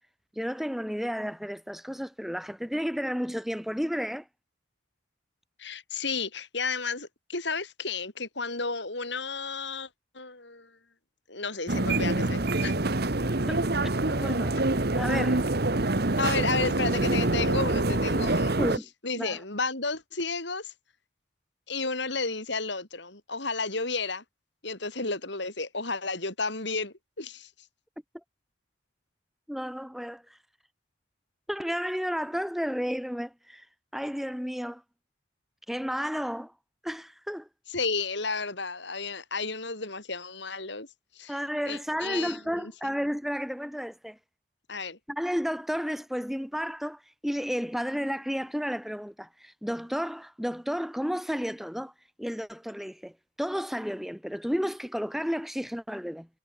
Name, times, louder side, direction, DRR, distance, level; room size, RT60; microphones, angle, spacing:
voice 1, 0.4-4.3 11.7-11.8 13.5-13.6 14.1-14.6 15.0-15.4 18.6-18.9 19.2-19.4 29.5-30.4 31.5-33.7 33.9-34.8 35.7-36.5 36.8-37.5 41.3-44.2 45.1-51.9 52.2-53.1 53.4-56.3, equal, ahead, 3.8 m, -32 dB
voice 2, 5.6-9.9 10.1-10.7 11.3-12.7 16.2-18.6 19.0-20.7 21.7-24.2 24.6-27.5 37.7-40.9 41.1-41.3 41.7-42.7 44.7-45.0, left 4 dB, 60° left, 4.7 m, -32 dB
sound 1, 11.7-18.8, right 2 dB, 50° right, 1.4 m, -26 dB
head